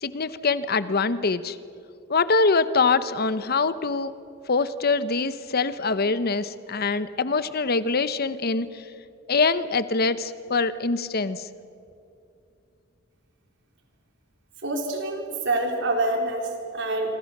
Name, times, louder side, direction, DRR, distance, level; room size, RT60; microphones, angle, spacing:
voice 1, 0.0-1.6 2.1-4.1 4.5-8.8 9.3-11.5, left 4 dB, 50° left, 14 dB, 0.9 m, -24 dB
voice 2, 14.6-17.1, right 2 dB, 65° right, 2 dB, 4.3 m, -26 dB
26.5 x 25.5 x 6.7 m, 2.5 s
head